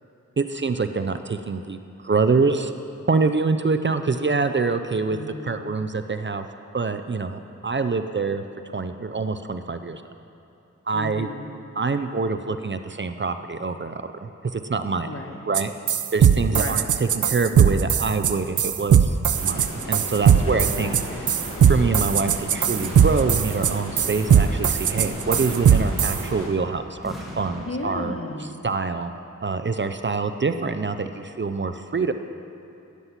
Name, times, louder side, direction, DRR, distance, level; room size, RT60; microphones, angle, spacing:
voice 1, 0.4-2.7 3.1-5.2 5.4-6.4 6.7-8.4 8.7-10.0 10.9-11.3 11.8-15.1 15.5-15.7 16.1-20.9 21.7-28.2 28.6-29.1 29.4-32.1, right 4 dB, 40° right, 9 dB, 0.5 m, -25 dB
voice 2, 5.1-5.9 10.9-11.5 15.0-15.5 16.5-16.8 20.5-21.3 27.6-28.5, left 2 dB, 45° left, 3 dB, 1.3 m, -34 dB
sound 1, 15.5-15.6 15.9-26.2, right 8 dB, 80° right, 0.5 m, -18 dB
Stream, 19.3-26.5, left 1 dB, 80° left, 2.3 m, -35 dB
sound 2, 22.7-24.0 25.2-26.5 27.0-28.2, equal, ahead, 2.3 m, -38 dB
13.5 x 9.6 x 5.9 m, 2.8 s
wide cardioid pair, 75°, 30 cm